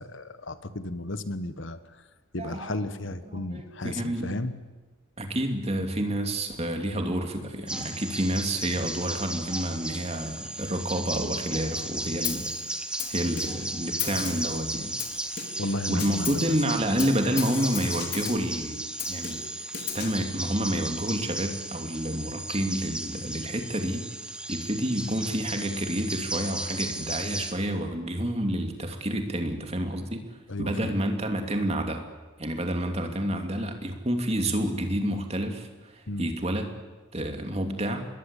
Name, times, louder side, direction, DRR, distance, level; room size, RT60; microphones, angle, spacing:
voice 1, 0.0-1.8 2.3-4.5 15.6-16.5 30.5-30.9 36.1-36.3, left 1 dB, 65° left, 12 dB, 1.3 m, -33 dB
voice 2, 2.4-2.8 3.3-4.4 5.2-12.8 13.1-15.0 15.9-18.8 19.1-19.4 19.9-24.0 24.5-30.2 30.6-32.0 32.4-36.7 37.1-38.0, right 1 dB, 30° right, 5 dB, 2.7 m, -29 dB
sound 1, 7.7-27.5, right 1 dB, 5° right, 1.2 m, -35 dB
Snare drum, 12.2-12.6 13.0-13.7 14.0-14.6 15.0-15.7 16.0-16.5 17.0-18.5 19.0-20.2, left 8 dB, 50° left, 3.2 m, -35 dB
27.5 x 21.5 x 8.4 m, 1.3 s
head